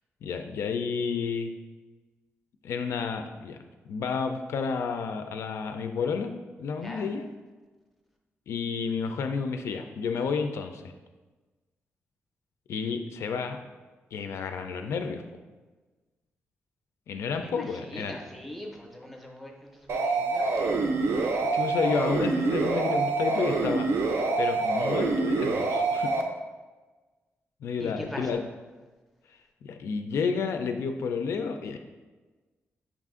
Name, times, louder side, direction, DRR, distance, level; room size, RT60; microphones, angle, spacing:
voice 1, 0.2-1.5 2.6-3.6 3.9-6.3 6.6-7.2 8.5-10.9 12.7-13.6 14.1-15.2 17.1-18.2 21.5-23.9 24.4-26.1 27.6-28.4 29.6-31.8, left 5 dB, 80° left, 6 dB, 0.3 m, -31 dB
voice 2, 17.4-20.7 27.8-28.4, equal, ahead, 1 dB, 0.5 m, -42 dB
sound 1, 19.9-26.2, right 3 dB, 70° right, 0.5 m, -26 dB
5.8 x 2.5 x 3.6 m, 1.3 s
wide cardioid pair, 175°, 5 cm